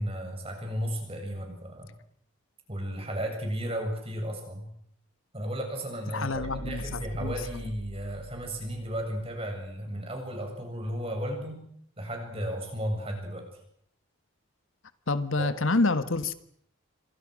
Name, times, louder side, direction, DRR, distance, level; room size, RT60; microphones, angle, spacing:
voice 1, 0.0-1.9 2.7-4.7 5.3-11.6 12.0-13.5 15.4-15.5, equal, 25° right, 3 dB, 7.5 m, -34 dB
voice 2, 6.1-7.6 15.1-16.3, left 3 dB, 70° left, 12 dB, 1.5 m, -28 dB
sound 1, 6.2-9.4, right 1 dB, 80° right, 5.6 m, -43 dB
28.0 x 26.0 x 6.4 m, 0.68 s
head